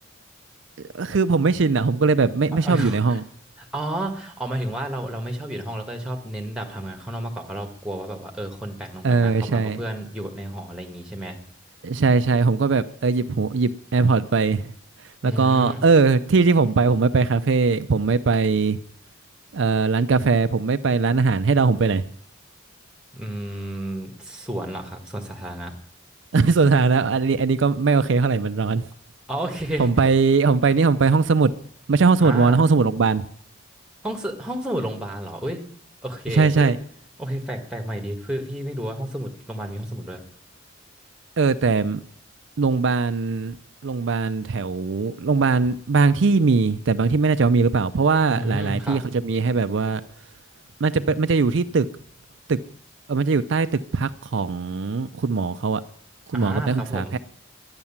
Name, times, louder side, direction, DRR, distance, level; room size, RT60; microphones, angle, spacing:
voice 1, 0.9-3.2 9.0-9.8 11.8-14.7 15.2-18.8 19.5-22.0 26.3-28.8 29.8-31.5 31.9-33.3 36.3-36.8 41.4-42.0 42.6-43.6 43.8-50.0 50.8-51.9 52.5-52.6 53.1-55.8 56.3-57.2, right 4 dB, 65° right, 0.5 m, -20 dB
voice 2, 2.5-3.2 3.6-11.4 15.2-15.8 23.1-25.7 29.3-29.9 32.2-32.6 34.0-35.6 36.0-36.7 37.2-40.2 48.3-49.0 56.3-57.1, right 1 dB, 5° right, 1.7 m, -31 dB
12.0 x 9.7 x 7.2 m
head